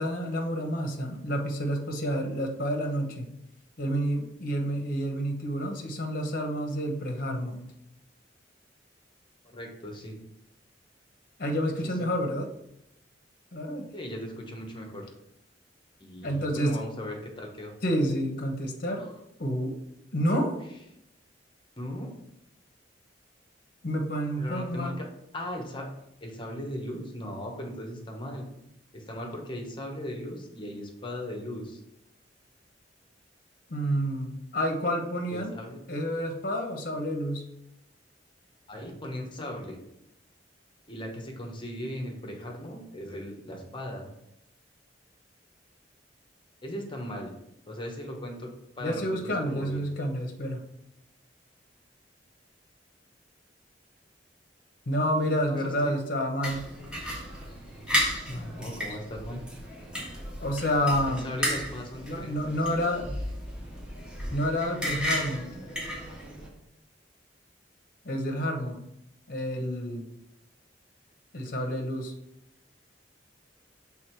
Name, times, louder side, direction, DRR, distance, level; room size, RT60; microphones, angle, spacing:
voice 1, 0.0-3.3 3.8-7.6 11.4-12.5 13.5-13.9 16.2-16.8 17.8-19.1 19.4-19.7 20.1-20.5 23.8-24.9 33.7-35.5 35.9-37.4 48.8-50.6 54.9-56.7 58.3-58.7 60.4-61.2 62.1-63.1 64.3-65.5 68.0-68.8 69.3-70.0 71.3-72.1, equal, 55° left, 2 dB, 0.9 m, -29 dB
voice 2, 9.4-10.2 11.8-12.1 13.9-15.1 16.0-17.7 19.0-19.2 20.3-20.5 21.8-22.1 24.4-25.1 25.3-25.9 26.2-28.5 28.9-31.8 35.3-35.8 38.7-39.8 40.9-44.1 46.6-47.3 47.7-49.9 55.5-55.9 58.3-59.5 61.1-62.5, left 1 dB, 30° left, 2 dB, 1.1 m, -38 dB
sound 1, 56.4-66.5, equal, 5° right, 1.6 m, -34 dB
6.4 x 3.5 x 4.6 m, 0.80 s
head